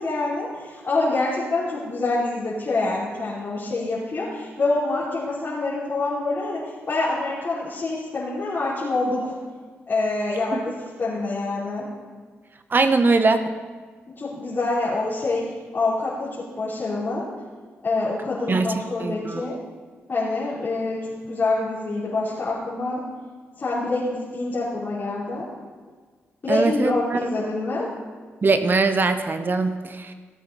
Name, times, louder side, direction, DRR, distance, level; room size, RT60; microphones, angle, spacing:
voice 1, 0.0-6.6 6.9-9.3 9.9-11.9 14.2-15.4 15.7-16.3 16.6-17.2 17.8-19.5 20.1-21.0 21.3-23.0 23.6-25.5 26.4-27.9, left 2 dB, 45° left, -9 dB, 3.3 m, -26 dB
voice 2, 12.7-13.4 18.5-19.4 26.5-27.3 28.4-30.1, right 3 dB, 45° right, 9 dB, 0.9 m, -21 dB
16.0 x 8.2 x 4.0 m, 1.5 s
supercardioid pair, 55°, 5 cm